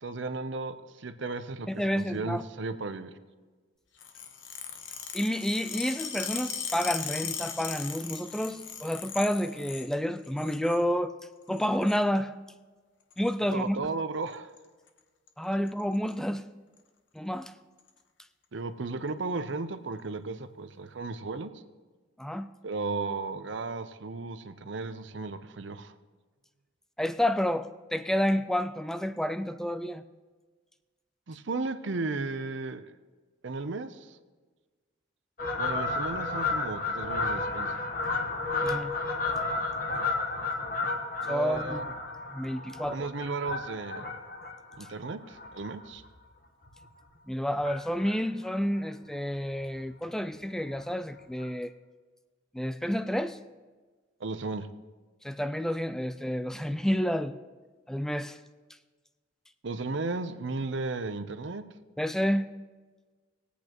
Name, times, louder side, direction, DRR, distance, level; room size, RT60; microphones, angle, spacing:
voice 1, 0.0-3.1 13.5-14.5 18.5-21.5 22.6-25.9 31.3-32.9 33.4-34.2 35.6-37.8 41.3-41.9 42.9-44.1 44.8-46.0 54.2-54.7 59.6-61.6, right 3 dB, 65° right, 0.7 m, -35 dB
voice 2, 1.7-2.4 5.1-11.2 11.5-12.3 13.2-13.8 15.4-16.4 17.1-17.5 22.2-22.5 27.0-30.0 38.6-38.9 41.3-41.8 42.3-43.1 47.3-51.7 52.5-53.4 55.2-57.3 57.9-58.4 62.0-62.5, equal, 5° left, 0.3 m, -29 dB
sound 1, 4.0-9.9 10.2-10.8 11.5-12.0 13.1-13.3 14.3-14.6 14.9-15.0 15.3-15.4 15.7-16.1 16.8-16.9 17.8-17.9, left 7 dB, 65° left, 1.0 m, -38 dB
Fowl, 35.4-46.2 46.6-46.9 47.6-48.2 48.5-48.6 48.8-48.9 49.2-49.3 49.6-49.8 50.8-50.9 51.4-51.5, left 3 dB, 45° left, 1.2 m, -32 dB
20.5 x 8.4 x 3.0 m
head